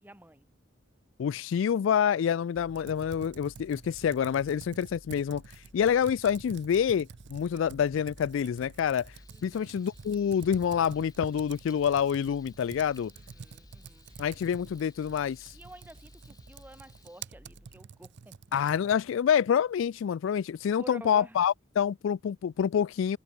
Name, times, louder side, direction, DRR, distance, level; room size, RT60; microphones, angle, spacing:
voice 1, 0.0-0.4 9.3-9.9 13.1-14.2 15.5-18.6 20.8-21.4, right 1 dB, 10° right, 1.4 m, -50 dB
voice 2, 1.2-5.4 5.7-9.1 9.4-13.1 14.2-15.5 18.5-23.2, left 8 dB, 70° left, 0.3 m, -27 dB
sound 1, 2.6-17.8, equal, 30° right, 3.8 m, -55 dB
Computer keyboard, 2.7-19.1, right 6 dB, 60° right, 0.5 m, -49 dB
Frying (food), 9.1-17.3, left 5 dB, 20° left, 2.0 m, -62 dB
head